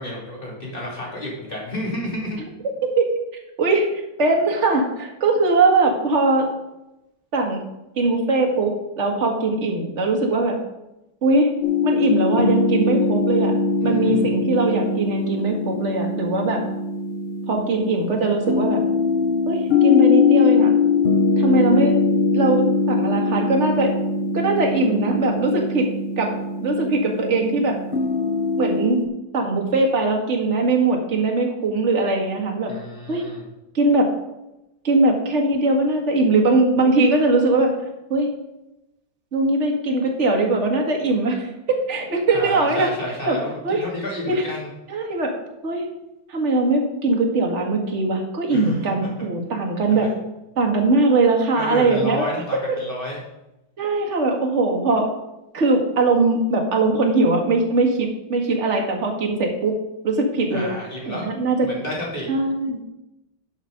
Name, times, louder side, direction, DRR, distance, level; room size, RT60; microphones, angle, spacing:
voice 1, 0.0-2.4 13.8-14.3 32.7-33.4 42.3-44.7 48.5-49.1 49.9-50.1 51.5-53.2 60.5-61.3 61.6-62.3, left 1 dB, 25° left, -3 dB, 3.0 m, -31 dB
voice 2, 4.2-6.5 7.3-7.6 8.0-10.6 11.2-11.5 11.8-13.6 13.8-16.6 17.5-18.8 19.5-20.7 21.4-22.0 22.3-23.9 24.3-25.9 26.2-26.3 26.6-27.8 28.6-29.0 29.3-32.7 33.1-33.2 33.7-34.1 34.8-37.7 38.1-38.3 39.3-42.9 43.2-43.4 43.6-43.9 44.3-44.4 44.9-45.3 45.6-45.9 46.3-50.1 50.6-52.3 52.5-52.8 53.8-55.1 55.5-59.7 60.0-60.7 61.1-61.7 62.3-62.8, right 2 dB, 40° right, 1 dB, 1.8 m, -20 dB
sound 1, 11.6-29.1, left 4 dB, 60° left, 0.6 m, -22 dB
10.5 x 5.9 x 5.1 m, 0.91 s
omnidirectional pair, 2.1 m